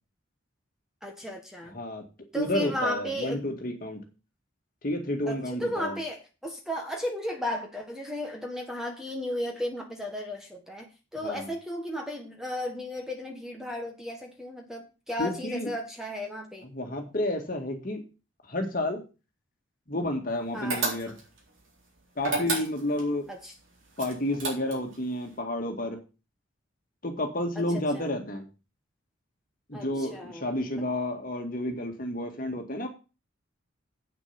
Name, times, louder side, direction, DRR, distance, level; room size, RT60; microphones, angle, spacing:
voice 1, 1.0-1.8 2.3-3.4 5.3-10.9 11.1-16.7 20.5-20.9 23.3-23.5 27.7-28.1 29.7-30.4, left 1 dB, ahead, 2 dB, 1.3 m, -34 dB
voice 2, 1.7-2.1 2.3-4.0 4.8-6.0 11.2-11.5 15.2-15.7 16.6-18.0 18.5-19.0 19.9-21.1 22.2-23.3 24.0-26.0 27.0-28.5 29.7-32.9, left 1 dB, 45° left, 4 dB, 2.0 m, -31 dB
sound 1, 20.7-21.4 22.2-23.1 24.0-25.0, right 3 dB, 75° right, 3.7 m, -30 dB
8.5 x 7.0 x 5.9 m, 0.31 s
head